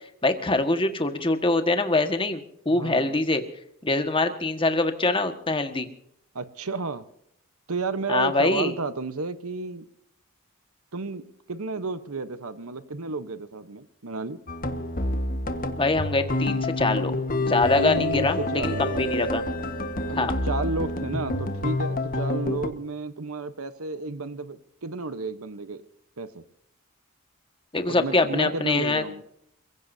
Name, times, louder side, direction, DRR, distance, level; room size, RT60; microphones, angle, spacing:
voice 1, 0.2-3.4 3.8-5.9 8.1-8.7 15.8-17.1 17.4-19.4 20.1-20.3 27.7-29.0, left 2 dB, 25° left, 7 dB, 1.6 m, -24 dB
voice 2, 2.7-3.2 6.3-7.0 7.7-9.8 10.9-14.4 17.8-19.1 20.1-25.8 26.2-26.4 27.9-29.2, right 3 dB, 85° right, 12 dB, 1.0 m, -32 dB
sound 1, 14.5-22.7, left 2 dB, 40° left, 1.4 m, -28 dB
28.0 x 16.0 x 2.8 m, 0.74 s
head